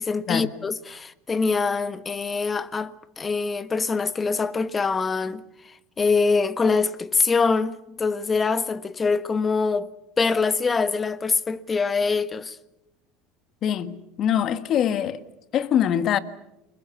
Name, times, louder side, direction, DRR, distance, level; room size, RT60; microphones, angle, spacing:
voice 1, 0.0-9.9 10.2-12.6, left 4 dB, 25° left, 1.4 m, -24 dB
voice 2, 13.6-15.2 15.5-16.2, left 9 dB, 50° left, 1.7 m, -23 dB
29.5 x 22.0 x 7.2 m
hypercardioid pair, 90°, 0 cm